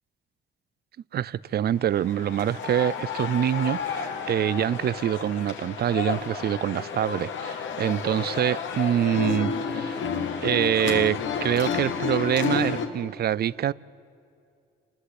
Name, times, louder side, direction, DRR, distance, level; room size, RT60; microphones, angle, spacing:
voice 1, 1.1-10.1 10.4-13.7, right 10 dB, 55° right, 0.5 m, -25 dB
sound 1, 1.8-12.9, left 6 dB, 75° left, 2.2 m, -31 dB
28.0 x 20.0 x 8.3 m
cardioid pair, 90°, 20 cm